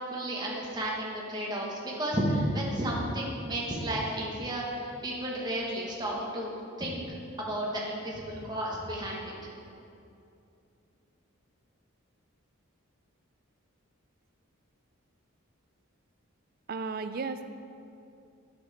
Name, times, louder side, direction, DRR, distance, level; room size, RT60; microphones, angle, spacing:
voice 1, 0.1-7.0 7.4-9.3, right 1 dB, 20° right, -3 dB, 1.3 m, -32 dB
voice 2, 16.7-17.4, right 4 dB, 45° right, 10 dB, 0.4 m, -34 dB
10.0 x 7.2 x 4.2 m, 2.6 s
head